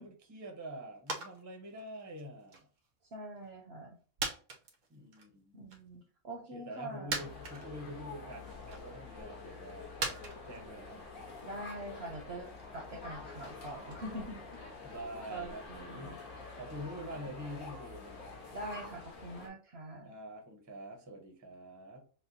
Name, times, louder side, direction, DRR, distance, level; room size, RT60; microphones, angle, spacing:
voice 1, 0.0-2.7 4.9-5.5 6.5-10.0 10.4-11.0 14.8-18.2 20.0-22.0, equal, 15° right, 2 dB, 0.6 m, -46 dB
sound 1, 1.1-1.4 1.7-2.9 3.4-3.5 4.2-5.3 5.7-5.8 6.7-6.8 7.1-8.0 8.4-9.0 10.0-14.1 14.4-14.5, right 3 dB, 90° right, 1.3 m, -41 dB
voice 2, 3.1-4.0 5.5-7.2 11.4-14.4 15.3-16.2 18.5-20.1, right 1 dB, 55° right, 3 dB, 0.8 m, -44 dB
sound 2, 7.1-19.5, left 4 dB, 70° left, 1.6 m, -47 dB
6.4 x 2.2 x 2.6 m, 0.41 s
omnidirectional pair, 1.5 m